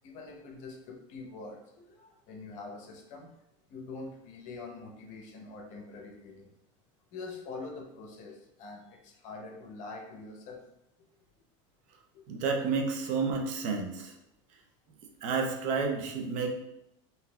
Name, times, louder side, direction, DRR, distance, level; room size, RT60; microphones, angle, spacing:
voice 1, 0.0-3.3 3.7-6.5 7.1-10.6 12.1-12.2, left 3 dB, 50° left, 1 dB, 0.8 m, -44 dB
voice 2, 12.3-14.2 15.2-16.5, right 4 dB, 50° right, 2 dB, 0.6 m, -30 dB
3.9 x 2.7 x 2.2 m, 0.85 s
supercardioid pair, 135°, 16 cm